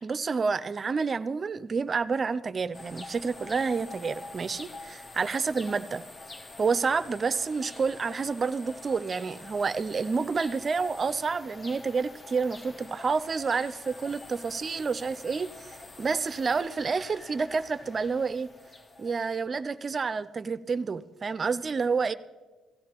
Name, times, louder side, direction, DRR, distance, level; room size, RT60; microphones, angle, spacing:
voice 1, 0.0-6.0 6.6-18.5 19.0-22.1, right 5 dB, 40° right, 15 dB, 0.4 m, -29 dB
sound 1, 2.7-19.5, left 2 dB, 30° left, 0.8 m, -46 dB
16.5 x 13.5 x 2.9 m, 1.3 s
cardioid pair, 90°, 0 cm